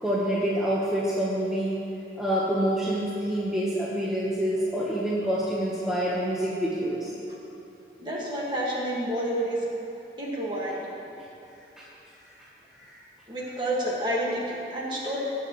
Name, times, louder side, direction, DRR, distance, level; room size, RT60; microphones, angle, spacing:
voice 1, 0.0-1.8 2.2-7.1 11.8-11.9 12.8-13.0, right 1 dB, 5° right, -8 dB, 1.1 m, -27 dB
voice 2, 8.0-9.6 10.2-10.8 13.3-15.2, right 1 dB, 25° right, -4 dB, 1.8 m, -29 dB
20.5 x 7.1 x 3.1 m, 3.0 s
head